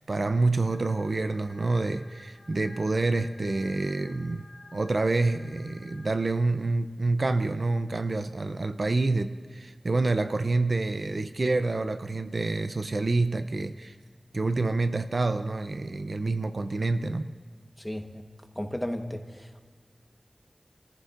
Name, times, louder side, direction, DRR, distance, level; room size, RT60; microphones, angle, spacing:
voice 1, 0.0-4.5 4.7-14.0 14.3-17.3, right 3 dB, 60° right, 10 dB, 0.5 m, -27 dB
sound 1, 0.7-6.2, left 3 dB, 65° left, 1.5 m, -52 dB
voice 2, 17.8-18.2 18.5-19.6, left 1 dB, 10° left, 4 dB, 1.1 m, -34 dB
28.5 x 14.5 x 2.5 m, 1.5 s
wide cardioid pair, 80°, 0 cm